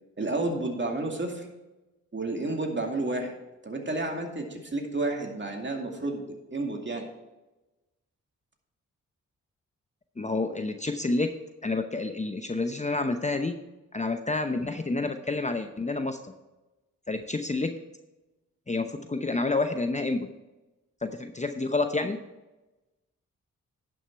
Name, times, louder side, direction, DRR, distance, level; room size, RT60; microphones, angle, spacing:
voice 1, 0.2-1.5 2.1-3.4 3.6-6.2 6.5-7.1, right 2 dB, 35° right, 2 dB, 2.3 m, -31 dB
voice 2, 10.2-11.3 11.6-13.6 13.9-16.3 17.1-17.7 18.7-20.3 21.0-22.2, left 3 dB, 20° left, 7 dB, 0.8 m, -29 dB
11.0 x 6.3 x 4.6 m, 1.1 s
supercardioid pair, 45°, 33 cm